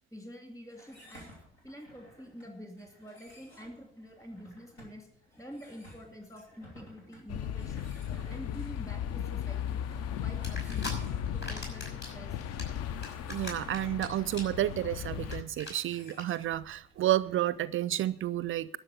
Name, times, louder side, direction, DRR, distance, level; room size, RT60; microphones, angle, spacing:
voice 1, 0.1-1.3 1.6-5.1 5.4-7.8 8.3-9.8 10.2-10.9 11.3-12.4, equal, 10° left, 2 dB, 2.5 m, -47 dB
sound 1, 0.7-18.1, equal, 80° left, 3.1 m, -57 dB
sound 2, 7.3-15.4, left 9 dB, 50° left, 0.7 m, -36 dB
sound 3, 10.4-10.9 11.3-12.1 12.4-14.0 14.3-14.6 14.9-15.0 15.2-15.3 15.6-15.7 16.1-16.2, left 2 dB, 35° left, 5.6 m, -39 dB
voice 2, 13.3-18.7, right 13 dB, 45° right, 18 dB, 0.4 m, -30 dB
12.0 x 6.6 x 9.2 m, 0.78 s
figure-of-eight pair, 45°, 31 cm